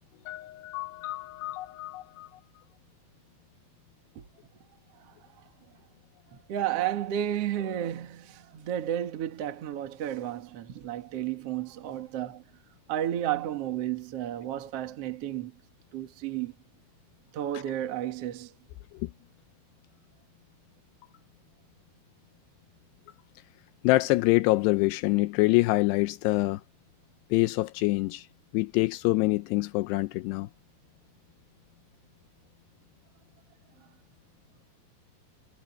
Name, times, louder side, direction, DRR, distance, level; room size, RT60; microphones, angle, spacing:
voice 1, 0.3-2.3 19.0-19.1 23.8-26.6 27.3-28.3 28.5-30.5, left 20 dB, 90° left, 2.3 m, -25 dB
voice 2, 6.3-12.4 12.9-15.5 15.9-16.5 17.3-18.5, right 11 dB, 75° right, 1.4 m, -32 dB
omnidirectional pair, 5.5 m